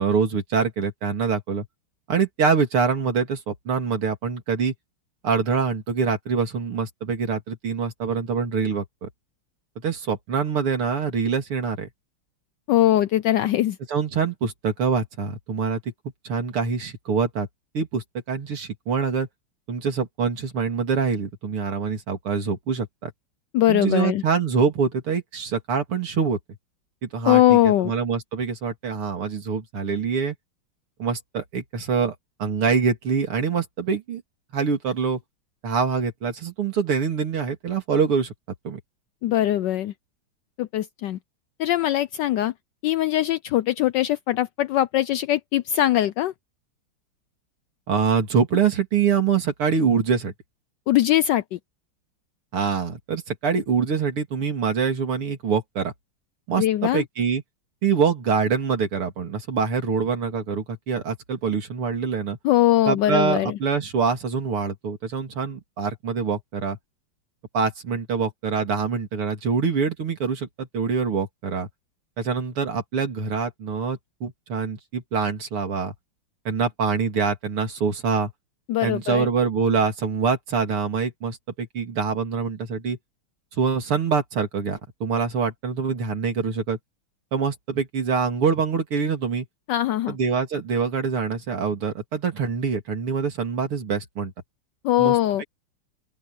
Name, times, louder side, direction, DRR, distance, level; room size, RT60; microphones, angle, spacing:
voice 1, 0.0-1.7 2.1-4.7 5.2-9.1 9.8-11.9 13.9-15.8 16.2-17.5 17.7-19.3 19.7-23.1 23.7-26.4 27.0-30.4 31.0-32.1 32.4-34.2 34.5-35.2 35.6-38.3 38.6-38.8 47.9-50.3 52.5-55.9 56.5-57.4 57.8-62.4 62.9-66.8 67.5-71.7 72.2-75.9 76.5-78.3 78.8-83.0 83.6-86.8 87.3-89.5 90.1-94.3 95.0-95.4, right 5 dB, 90° right, 3.7 m, -25 dB
voice 2, 12.7-13.8 23.5-24.2 27.2-27.9 39.2-39.9 40.6-41.2 41.6-42.5 42.8-46.3 50.9-51.6 56.6-57.0 62.4-63.6 78.7-79.3 89.7-90.2 94.8-95.4, left 13 dB, 80° left, 1.0 m, -21 dB
open air
omnidirectional pair, 2.3 m